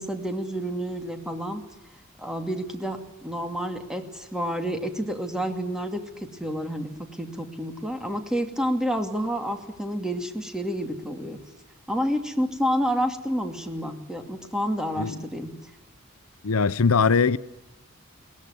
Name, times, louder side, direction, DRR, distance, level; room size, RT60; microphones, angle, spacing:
voice 1, 0.0-1.6 2.2-11.4 11.9-15.5, equal, 5° right, 2.5 m, -29 dB
voice 2, 16.4-17.4, left 5 dB, 90° left, 0.7 m, -21 dB
22.0 x 17.5 x 9.9 m
head